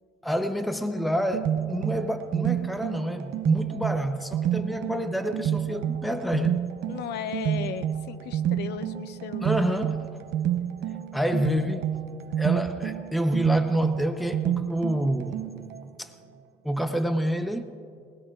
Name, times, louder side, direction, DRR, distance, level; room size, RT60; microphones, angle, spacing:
voice 1, 0.2-6.6 9.4-10.1 11.1-11.9 12.4-15.5 16.0-16.1 16.6-17.6, equal, ahead, 0.8 m, -27 dB
sound 1, 1.0-15.8, right 10 dB, 80° right, 0.8 m, -29 dB
voice 2, 6.9-9.8, left 8 dB, 75° left, 0.7 m, -36 dB
24.0 x 19.0 x 2.5 m
cardioid pair, 110°, 17 cm